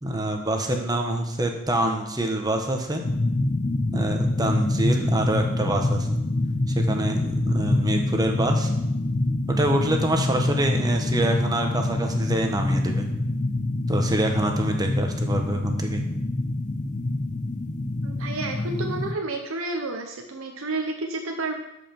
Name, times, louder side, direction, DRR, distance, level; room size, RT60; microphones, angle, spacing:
voice 1, 0.0-3.0 3.9-6.2 6.7-8.7 9.5-13.1 13.9-16.1, right 1 dB, 20° right, 3 dB, 1.1 m, -25 dB
sound 1, 3.0-19.1, left 2 dB, 35° left, 0.5 m, -26 dB
voice 2, 18.0-21.6, right 2 dB, 70° right, 3 dB, 0.9 m, -30 dB
13.0 x 5.1 x 5.3 m, 0.90 s
head